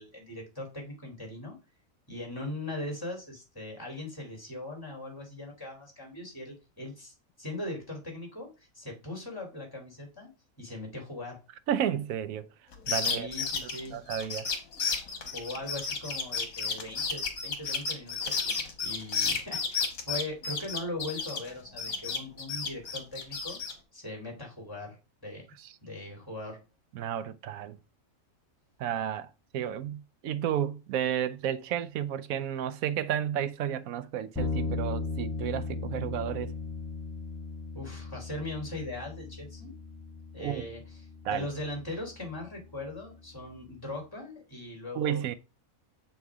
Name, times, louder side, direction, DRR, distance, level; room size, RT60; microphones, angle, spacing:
voice 1, 0.0-1.5 2.1-10.3 10.6-11.4 12.9-13.9 15.3-23.6 23.9-25.5 25.8-26.6 37.7-39.7 40.3-41.0 41.3-45.4, left 1 dB, 15° left, 3.0 m, -40 dB
voice 2, 11.7-12.5 12.9-13.3 13.6-14.5 26.9-27.8 28.8-29.3 29.5-36.5 40.4-40.7 41.2-41.5 44.9-45.3, right 10 dB, 85° right, 1.1 m, -32 dB
sound 1, 12.7-21.5 21.8-23.7, left 5 dB, 85° left, 1.8 m, -32 dB
sound 2, 34.3-43.8, left 3 dB, ahead, 4.6 m, -38 dB
7.1 x 4.6 x 4.7 m
omnidirectional pair, 1.4 m